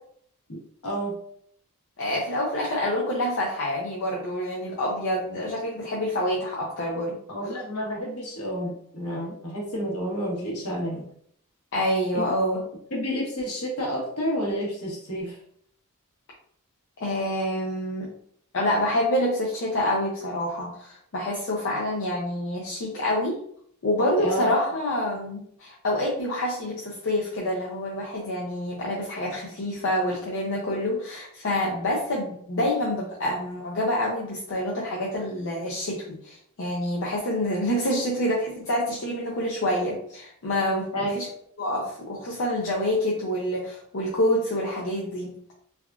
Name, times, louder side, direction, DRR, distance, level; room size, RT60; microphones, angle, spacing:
voice 1, 0.8-1.1 7.3-11.1 12.1-12.2 12.9-15.4 24.2-24.5 40.9-41.1, equal, 75° left, -3 dB, 1.1 m, -30 dB
voice 2, 2.0-7.2 11.7-12.6 17.0-18.1 18.5-23.4 23.8-41.3 41.6-45.4, left 1 dB, 60° left, -4 dB, 0.5 m, -27 dB
3.4 x 2.4 x 2.3 m, 0.65 s
head